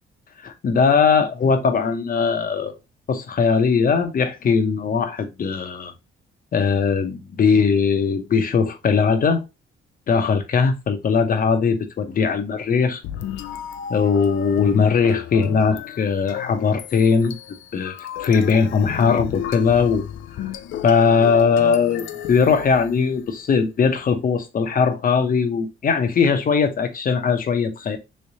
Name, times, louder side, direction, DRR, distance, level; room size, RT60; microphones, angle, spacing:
voice 1, 0.4-2.7 3.1-5.9 6.5-9.4 10.1-13.0 13.9-17.3 17.7-17.9 18.2-20.0 20.8-28.0, left 5 dB, 45° left, 0.8 m, -19 dB
sound 1, 13.0-23.3, left 10 dB, 80° left, 0.5 m, -33 dB
3.3 x 3.2 x 2.7 m
cardioid pair, 90°, 20 cm